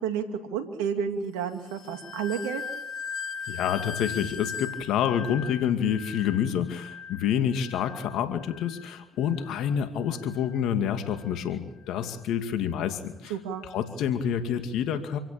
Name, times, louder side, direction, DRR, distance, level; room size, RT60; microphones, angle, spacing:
voice 1, 0.5-2.6 13.3-13.6, right 7 dB, 90° right, 7 dB, 2.6 m, -30 dB
sound 1, 1.7-10.6 11.0-11.4 11.9-12.2, left 6 dB, 55° left, 2.6 m, -39 dB
voice 2, 3.5-13.3 13.6-15.2, left 9 dB, 75° left, 8 dB, 2.2 m, -28 dB
27.0 x 16.5 x 8.9 m, 0.82 s
supercardioid pair, 60°, 0 cm